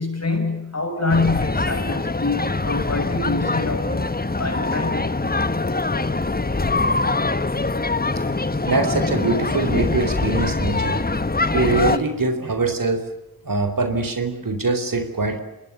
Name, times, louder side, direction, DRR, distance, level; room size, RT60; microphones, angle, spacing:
voice 1, 0.0-4.1 4.4-5.2, left 3 dB, 45° left, 7.6 m, -25 dB
sound 1, 1.1-12.0, left 3 dB, 25° left, 1.3 m, -23 dB
voice 2, 8.7-11.0 11.5-13.0 13.4-15.4, right 3 dB, 60° right, 4.0 m, -23 dB
27.5 x 20.5 x 7.1 m
cardioid pair, 50°, 37 cm